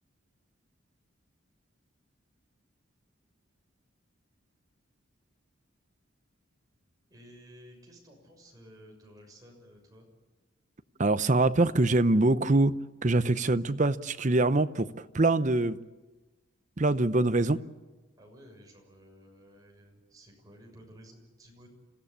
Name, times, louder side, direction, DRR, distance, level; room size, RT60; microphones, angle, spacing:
voice 1, 7.1-10.1 18.2-21.7, equal, 20° right, 6.6 m, -54 dB
voice 2, 11.0-15.8 16.8-17.7, right 2 dB, 35° right, 0.7 m, -24 dB
27.5 x 16.5 x 8.6 m
head